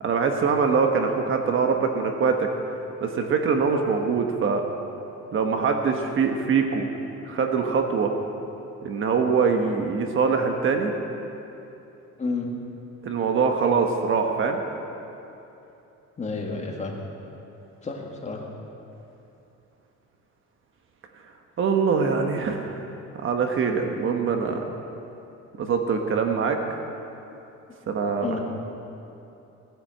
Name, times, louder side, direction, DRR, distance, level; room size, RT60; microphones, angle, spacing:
voice 1, 0.0-2.5 3.0-4.6 5.3-6.9 7.3-8.1 8.8-10.9 13.0-14.6 21.6-22.9 23.2-24.7 25.6-26.6 27.9-28.4, right 5 dB, 40° right, 4 dB, 1.2 m, -23 dB
voice 2, 16.2-16.9 17.8-18.4 28.2-28.4, left 4 dB, 20° left, 0 dB, 1.9 m, -30 dB
17.5 x 10.0 x 7.7 m, 2.9 s
cardioid pair, 165°, 30 cm